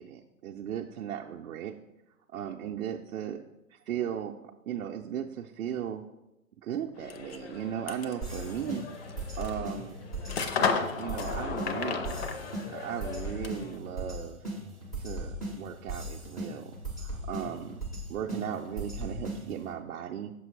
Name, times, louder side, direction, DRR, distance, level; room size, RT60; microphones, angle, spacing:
voice 1, 0.0-1.8 2.3-3.4 3.7-6.0 6.6-8.8 9.4-10.0 11.0-12.2 12.7-14.4 15.0-17.8 18.1-20.3, right 9 dB, 70° right, 0 dB, 0.5 m, -37 dB
sound 1, 7.0-13.8, left 5 dB, 45° left, 0.6 m, -35 dB
sound 2, 8.2-19.7, right 1 dB, 5° left, 0.4 m, -38 dB
6.1 x 5.5 x 3.2 m, 0.93 s
hypercardioid pair, 140°, 42 cm